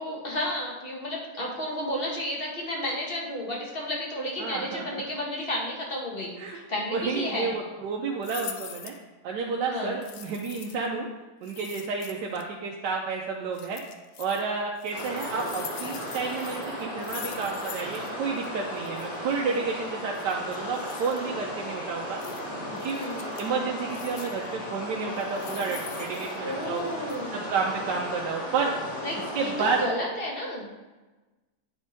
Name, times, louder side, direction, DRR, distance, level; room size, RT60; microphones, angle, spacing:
voice 1, 0.0-6.3 6.7-7.5 9.6-10.0 22.9-23.2 26.4-27.3 29.0-30.7, left 1 dB, 35° left, -2 dB, 1.3 m, -32 dB
voice 2, 4.4-5.0 6.4-6.6 6.9-8.9 9.2-11.1 11.4-13.8 14.2-22.2 22.7-23.0 23.4-26.9 27.3-28.8 29.3-29.8, right 5 dB, 85° right, 0 dB, 1.3 m, -30 dB
sound 1, 8.2-9.0 10.0-10.9 11.4-12.4 13.5-14.4 14.8-18.1 18.4-18.5 18.8-19.1 20.1-21.2 22.2-22.4 22.8-23.5 23.9-24.5 25.1-26.8 27.1-27.2, left 9 dB, 75° left, 1.1 m, -43 dB
sound 2, 14.9-29.9, left 1 dB, 55° left, 2.9 m, -36 dB
9.3 x 3.5 x 4.0 m, 1.2 s
omnidirectional pair, 1.8 m